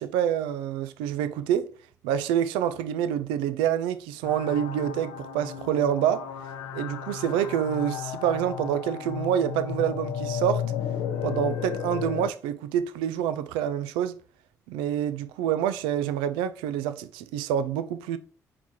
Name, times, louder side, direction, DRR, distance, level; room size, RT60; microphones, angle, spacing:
voice 1, 0.0-1.7 2.0-6.3 6.7-10.6 11.2-14.2 14.7-18.2, right 10 dB, 75° right, 0.3 m, -27 dB
sound 1, 4.2-12.3, left 8 dB, 70° left, 0.6 m, -33 dB
4.7 x 3.8 x 2.7 m
hypercardioid pair, 45°, 8 cm